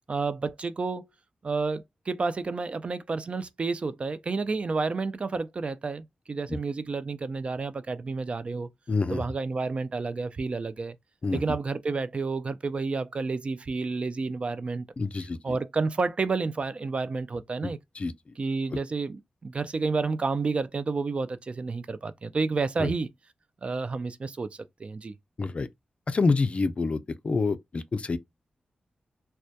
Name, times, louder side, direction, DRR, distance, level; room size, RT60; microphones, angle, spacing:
voice 1, 0.1-1.1 1.4-8.7 9.1-11.0 11.3-14.9 15.4-17.8 18.4-23.1 23.6-25.1, right 4 dB, 45° right, 0.3 m, -30 dB
voice 2, 8.9-9.2 11.2-11.4 15.0-15.6 17.6-17.7 18.0-18.1 18.7-18.8 22.8-22.9 25.4-25.7 26.1-28.2, left 3 dB, 45° left, 0.3 m, -27 dB
2.2 x 2.1 x 2.7 m
cardioid pair, 65°, 3 cm